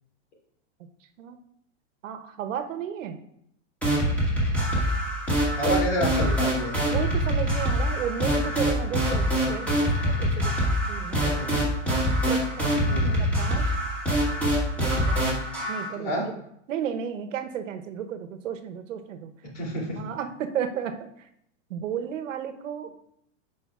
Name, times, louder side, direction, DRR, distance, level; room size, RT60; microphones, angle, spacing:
voice 1, 2.0-3.2 6.9-11.5 12.3-13.8 14.8-15.4 15.7-16.3 16.7-19.3 20.0-21.1 21.7-22.9, right 8 dB, 85° right, 7 dB, 1.0 m, -33 dB
sound 1, 3.8-15.9, equal, 5° left, 2.0 m, -25 dB
voice 2, 5.6-6.8 11.2-11.4 12.8-13.3 15.9-16.3 19.5-20.0, equal, 65° left, -2 dB, 3.1 m, -29 dB
12.0 x 5.0 x 2.4 m, 0.74 s
supercardioid pair, 150°, 37 cm